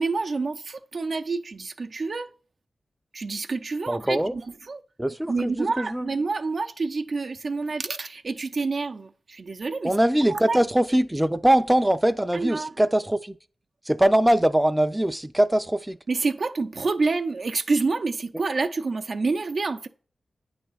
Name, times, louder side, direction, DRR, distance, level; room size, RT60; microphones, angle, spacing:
voice 1, 0.0-2.3 3.1-4.8 5.3-9.9 10.3-10.6 12.3-12.7 16.1-19.9, right 3 dB, 60° right, 0.6 m, -28 dB
voice 2, 3.9-4.4 5.0-6.1 9.8-13.4 13.9-16.0, right 1 dB, 10° right, 0.4 m, -22 dB
9.2 x 3.5 x 5.6 m
cardioid pair, 55°, 0 cm